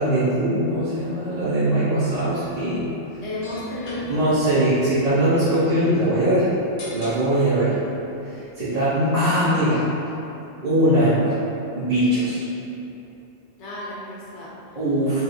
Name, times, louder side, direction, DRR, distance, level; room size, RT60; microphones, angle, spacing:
voice 1, 0.0-2.8 4.1-6.4 6.9-7.7 8.2-9.8 10.6-11.3 11.7-12.4 14.7-15.2, right 1 dB, 35° right, -15 dB, 1.0 m, -21 dB
sound 1, 2.1-9.3, left 1 dB, 85° left, 1.2 m, -44 dB
voice 2, 3.2-4.3 13.6-14.8, left 1 dB, 65° left, -6 dB, 1.1 m, -33 dB
4.7 x 3.2 x 2.6 m, 3.0 s
omnidirectional pair, 1.3 m